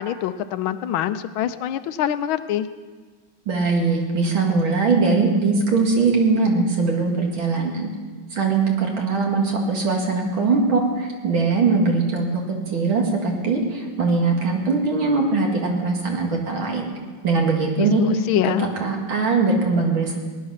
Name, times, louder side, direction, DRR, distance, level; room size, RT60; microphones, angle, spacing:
voice 1, 0.0-2.7 17.8-18.7, left 11 dB, 80° left, 12 dB, 1.5 m, -24 dB
voice 2, 3.5-7.9 8.3-12.3 12.7-16.9 17.2-18.0 18.8-20.2, right 4 dB, 80° right, 0 dB, 2.9 m, -21 dB
18.5 x 10.5 x 5.6 m, 1.4 s
omnidirectional pair, 2.2 m